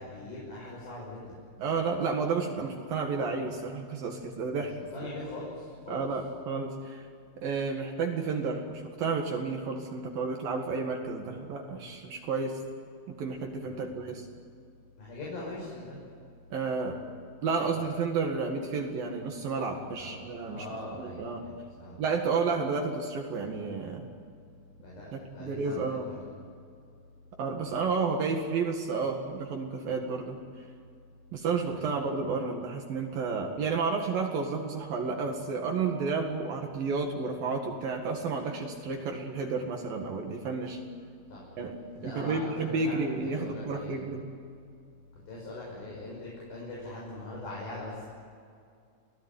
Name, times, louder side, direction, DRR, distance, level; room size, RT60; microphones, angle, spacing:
voice 1, 0.0-1.4 4.9-6.0 13.6-13.9 15.0-16.0 20.0-20.2 20.5-22.1 24.8-26.2 31.7-31.9 41.3-41.5 42.0-43.9 45.3-48.0, left 1 dB, 65° left, -5 dB, 8.4 m, -41 dB
voice 2, 1.6-4.7 5.9-7.1 7.4-12.6 13.1-14.2 16.5-17.0 17.4-21.4 22.0-24.1 25.1-26.1 27.4-30.4 31.3-40.8 41.6-41.8 42.0-44.2, right 4 dB, 65° right, 2 dB, 3.7 m, -31 dB
29.0 x 18.5 x 9.9 m, 2.4 s
omnidirectional pair, 4.5 m